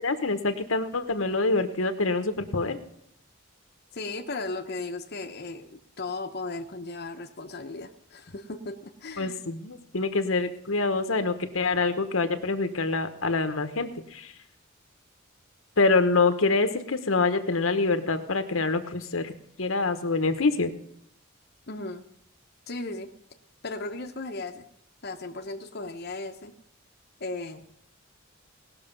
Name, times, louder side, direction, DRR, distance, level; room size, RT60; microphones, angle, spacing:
voice 1, 0.0-2.8 9.2-14.3 15.8-19.3 19.6-20.7, left 3 dB, 80° left, 8 dB, 1.1 m, -26 dB
voice 2, 3.9-9.4 21.7-22.0 22.7-23.1 23.6-24.7 25.0-26.5 27.2-27.6, left 2 dB, 50° left, 3 dB, 1.0 m, -36 dB
19.0 x 6.6 x 5.3 m, 0.75 s
head